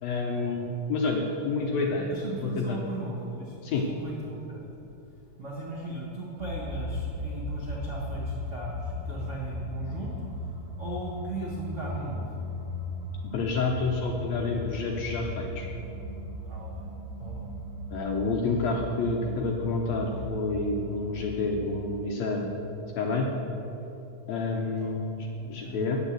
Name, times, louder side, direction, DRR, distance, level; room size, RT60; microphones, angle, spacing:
voice 1, 0.0-2.1 2.4-2.8 3.6-3.8 13.3-15.7 17.9-22.5 23.0-23.3 24.3-26.0, left 3 dB, 70° left, 1 dB, 1.7 m, -29 dB
voice 2, 2.1-4.6 5.4-10.1 10.8-12.2 16.5-16.9 17.2-17.4 24.8-24.9 25.4-25.8, right 2 dB, 50° right, -6 dB, 0.8 m, -37 dB
sound 1, 6.4-21.5, left 1 dB, 15° right, 1.4 m, -37 dB
9.2 x 7.8 x 7.5 m, 2.9 s
omnidirectional pair, 3.9 m